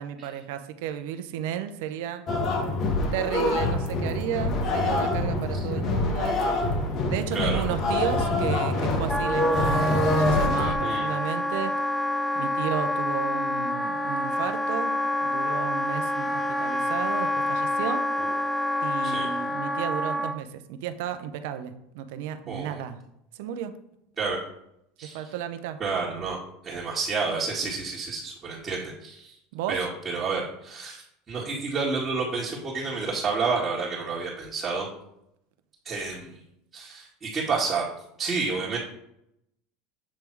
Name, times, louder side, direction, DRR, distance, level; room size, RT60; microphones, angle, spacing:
voice 1, 0.0-2.3 3.1-6.4 7.1-11.9 12.4-14.9 15.2-18.1 18.8-23.0 23.3-23.8 25.0-25.8 29.5-29.9, right 9 dB, 75° right, 9 dB, 0.6 m, -33 dB
sound 1, 2.3-10.7, left 2 dB, 45° left, 1.3 m, -25 dB
Wind instrument woodwind instrument, 9.1-20.4, left 1 dB, ahead, 0.4 m, -27 dB
voice 2, 22.5-22.8 24.2-24.4 25.0-25.2 25.8-26.4 26.6-29.4 29.7-31.0 31.3-34.9 35.8-36.3 36.7-37.8 38.2-38.8, right 4 dB, 25° right, -7 dB, 1.9 m, -29 dB
7.4 x 3.5 x 4.6 m, 0.79 s
supercardioid pair, 110°, 0 cm